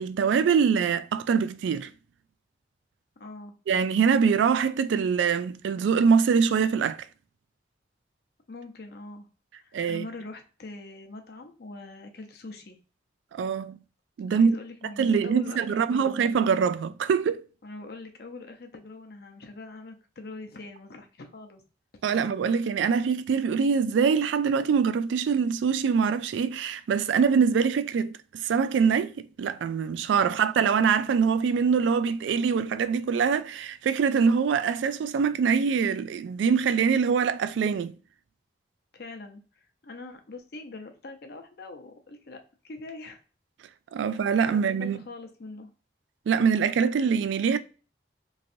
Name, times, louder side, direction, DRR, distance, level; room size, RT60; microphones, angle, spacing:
voice 1, 0.0-1.9 3.7-7.1 9.7-10.1 13.3-13.8 14.2-14.6 15.0-17.4 22.0-38.0 43.9-45.0 46.3-47.6, right 6 dB, 85° right, 0.3 m, -24 dB
voice 2, 3.2-3.5 8.5-9.3 9.5-12.8 14.3-16.2 17.6-21.6 30.2-30.5 38.9-39.4 39.8-43.2 44.0-44.2 44.5-45.7, left 3 dB, 60° left, 0.6 m, -43 dB
3.1 x 2.6 x 2.5 m
head